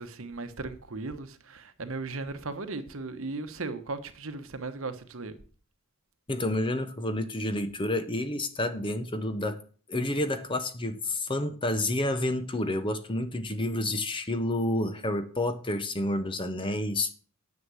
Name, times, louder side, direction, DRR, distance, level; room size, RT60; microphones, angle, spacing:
voice 1, 0.0-5.3, right 3 dB, 65° right, 1.1 m, -37 dB
voice 2, 6.3-9.6 9.9-17.1, left 1 dB, 20° left, 0.9 m, -29 dB
9.7 x 7.3 x 6.3 m
head